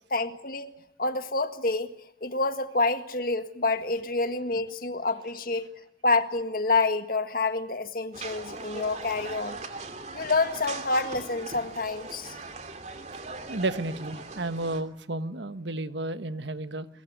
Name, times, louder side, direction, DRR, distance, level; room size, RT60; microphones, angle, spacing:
voice 1, 0.1-0.7 1.0-1.9 2.2-5.7 6.0-9.6 10.1-12.4, left 3 dB, 50° left, 9 dB, 1.8 m, -28 dB
sound 1, 8.1-14.8, right 3 dB, 40° right, 2.9 m, -40 dB
voice 2, 13.5-16.9, right 2 dB, 75° right, 11 dB, 1.4 m, -32 dB
22.5 x 22.5 x 9.5 m, 0.82 s
head